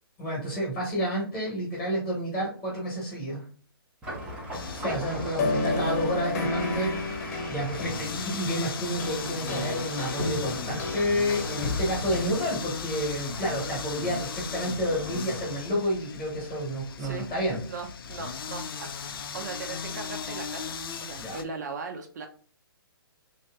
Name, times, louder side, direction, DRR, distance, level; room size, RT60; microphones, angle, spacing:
voice 1, 0.2-3.5 4.8-17.6 21.2-21.4, equal, 10° left, -4 dB, 1.1 m, -30 dB
sound 1, 4.0-15.4, equal, 5° right, 0.7 m, -41 dB
sound 2, 4.5-21.4, left 6 dB, 65° left, 0.4 m, -38 dB
voice 2, 4.7-5.0 17.0-22.3, right 4 dB, 45° right, 4 dB, 0.6 m, -39 dB
sound 3, 4.8-12.3, left 2 dB, 40° left, 0.9 m, -32 dB
2.9 x 2.7 x 3.3 m, 0.42 s
hypercardioid pair, 165°, 13 cm